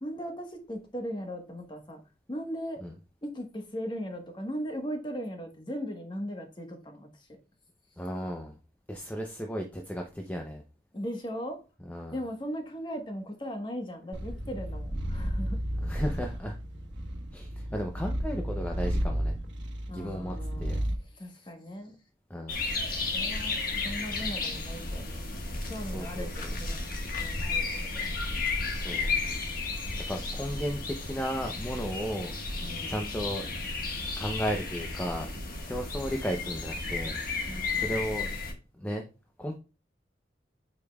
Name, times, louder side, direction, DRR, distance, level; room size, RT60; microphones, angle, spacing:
voice 1, 0.0-2.0 2.3-2.8 3.2-7.3 10.9-11.6 12.1-15.6 19.9-22.0 22.9-25.3 25.7-26.3 26.6-26.8 27.1-27.7 27.9-28.1 32.6-33.0 37.5-38.1, equal, 25° left, 4 dB, 1.3 m, -38 dB
voice 2, 8.0-8.5 8.9-10.6 11.9-12.2 15.8-16.6 17.3-19.4 19.9-20.8 22.3-22.7 25.9-26.5 27.6-28.0 28.7-29.1 30.1-33.5 34.2-35.3 35.6-37.2 37.7-38.3 38.8-39.1 39.4-39.6, equal, 10° left, 2 dB, 0.6 m, -35 dB
Purr, 14.1-21.0, equal, 85° right, 1.4 m, -32 dB
sound 1, 22.5-38.5, left 3 dB, 50° left, 1.5 m, -33 dB
8.2 x 5.2 x 2.3 m, 0.32 s
head